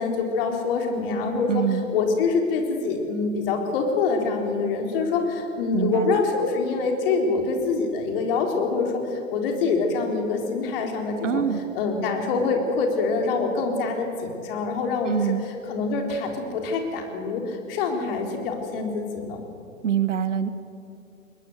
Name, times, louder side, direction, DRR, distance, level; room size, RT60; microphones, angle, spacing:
voice 1, 0.0-1.6 1.9-11.4 11.8-15.3 15.7-19.4, left 4 dB, 45° left, 3 dB, 4.0 m, -25 dB
voice 2, 1.5-1.9 5.7-6.2 11.2-11.6 15.0-15.4 19.8-20.5, right 8 dB, 65° right, 13 dB, 1.4 m, -24 dB
21.5 x 20.5 x 7.9 m, 2.6 s
figure-of-eight pair, 110°, 40 cm